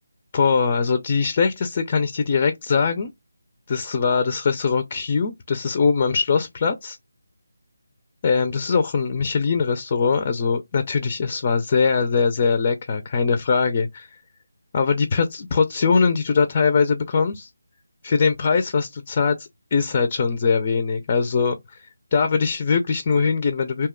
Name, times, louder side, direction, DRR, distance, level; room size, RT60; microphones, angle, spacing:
voice 1, 0.3-3.1 3.7-7.0 8.2-14.2 14.7-17.5 18.0-23.9, left 5 dB, 30° left, 0.4 m, -21 dB
2.7 x 2.1 x 3.6 m
figure-of-eight pair, 165°, 0 cm